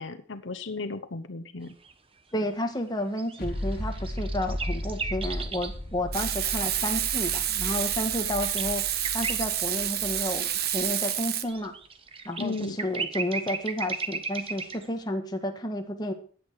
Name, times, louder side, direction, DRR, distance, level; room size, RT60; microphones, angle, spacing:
voice 1, 0.0-1.7 12.4-12.8, left 3 dB, 75° left, 10 dB, 1.0 m, -35 dB
sound 1, 1.7-1.9 3.2-5.8 6.3-9.5 10.0-10.1 10.6-14.9, right 5 dB, 30° right, 1.1 m, -36 dB
voice 2, 2.3-8.8 9.1-11.7 12.2-16.1, left 1 dB, 20° left, 4 dB, 1.7 m, -31 dB
sound 2, 3.4-10.9, equal, 50° left, 2.9 m, -36 dB
Frying (food), 6.1-11.4, right 11 dB, 55° right, 1.1 m, -29 dB
15.0 x 10.0 x 4.8 m, 0.43 s
head